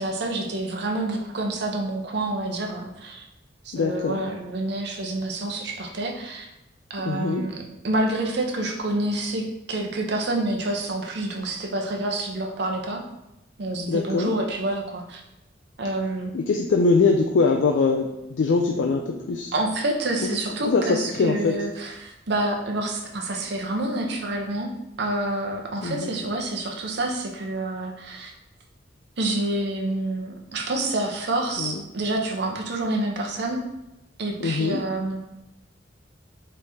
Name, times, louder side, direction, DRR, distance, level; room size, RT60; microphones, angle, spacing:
voice 1, 0.0-3.2 3.6-6.5 6.9-7.6 7.8-13.0 13.6-15.2 15.8-16.3 19.5-24.7 25.0-28.3 29.2-33.6 34.2-35.2, right 2 dB, 65° right, 1 dB, 0.7 m, -28 dB
voice 2, 3.7-4.2 7.0-7.4 13.9-14.3 16.3-19.5 20.6-21.5 25.8-26.1 31.6-31.7 34.4-34.8, left 4 dB, 75° left, 3 dB, 0.4 m, -22 dB
3.5 x 3.2 x 4.2 m, 0.91 s
head